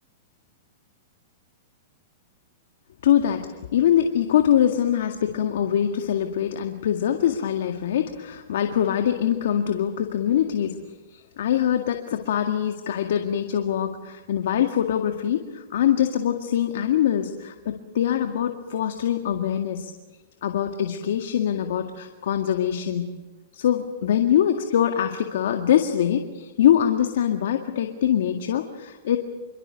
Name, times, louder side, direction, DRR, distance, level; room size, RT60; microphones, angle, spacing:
voice 1, 3.0-10.8 11.1-19.9 20.4-23.1 23.5-29.2, left 10 dB, 70° left, 5 dB, 2.0 m, -23 dB
27.5 x 24.0 x 6.9 m, 1.2 s
hypercardioid pair, 130°, 0 cm